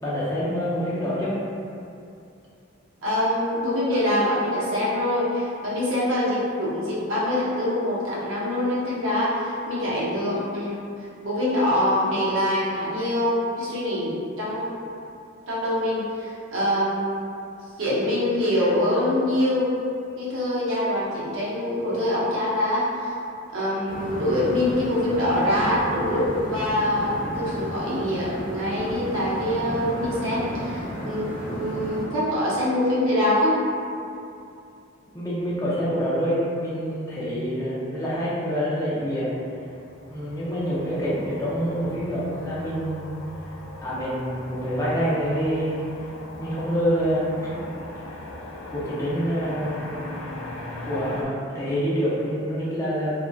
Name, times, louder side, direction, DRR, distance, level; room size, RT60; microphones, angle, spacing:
voice 1, 0.0-1.4 35.1-39.3 40.1-43.2 43.8-45.8 46.4-47.6 48.7-49.9 50.8-53.1, equal, 15° left, -8 dB, 0.5 m, -26 dB
voice 2, 3.0-10.9 11.2-14.8 15.5-17.3 17.8-19.7 20.2-23.1 23.5-33.6, left 1 dB, 85° right, -8 dB, 0.7 m, -24 dB
sound 1, 23.9-32.1, equal, 50° left, 0.8 m, -33 dB
Motor vehicle (road), 39.3-51.2, left 2 dB, 70° left, 0.3 m, -39 dB
2.5 x 2.2 x 2.3 m, 2.5 s
head